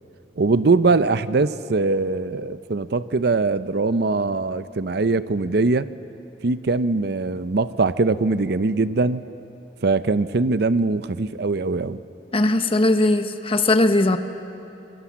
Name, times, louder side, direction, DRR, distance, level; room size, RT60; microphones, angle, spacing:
voice 1, 0.4-5.9 6.4-9.2 9.8-12.0, right 3 dB, 65° right, 14 dB, 0.6 m, -21 dB
voice 2, 12.3-14.2, left 2 dB, 30° left, 8 dB, 1.2 m, -19 dB
26.0 x 24.5 x 7.4 m, 2.8 s
head